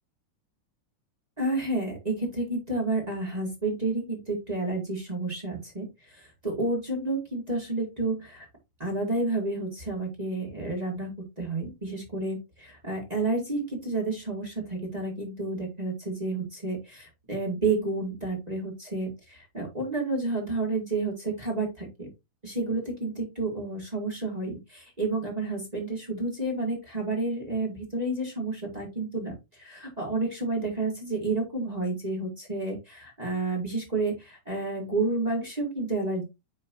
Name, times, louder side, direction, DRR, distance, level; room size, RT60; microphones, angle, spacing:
voice 1, 1.4-8.5 8.8-22.1 22.4-36.2, right 2 dB, 20° right, -1 dB, 1.2 m, -30 dB
9.3 x 3.5 x 3.0 m, 0.23 s
omnidirectional pair, 3.8 m